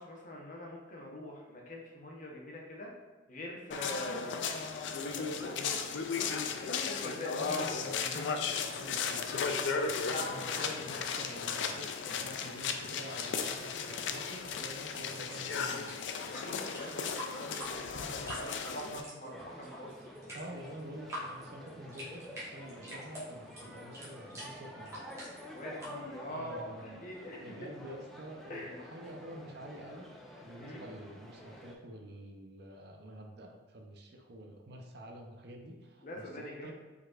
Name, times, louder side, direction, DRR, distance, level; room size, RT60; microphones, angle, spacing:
voice 1, 0.0-2.9 3.3-4.5 5.0-7.4 10.1-10.4 16.3-19.9 25.5-27.4 28.5-28.8 30.6-30.8 36.0-36.7, left 1 dB, 45° left, -1 dB, 0.8 m, -44 dB
sound 1, 3.7-19.0, left 5 dB, 70° left, 0.4 m, -35 dB
voice 2, 7.3-9.3 10.3-15.9 18.9-19.4 20.3-25.0 26.2-27.0 27.3-30.1 30.4-36.7, equal, 55° right, 2 dB, 0.6 m, -48 dB
sound 2, 14.8-25.9, equal, 15° right, 1.3 m, -47 dB
sound 3, 19.3-31.7, equal, ahead, 0.4 m, -50 dB
5.1 x 4.0 x 2.4 m, 1.3 s
head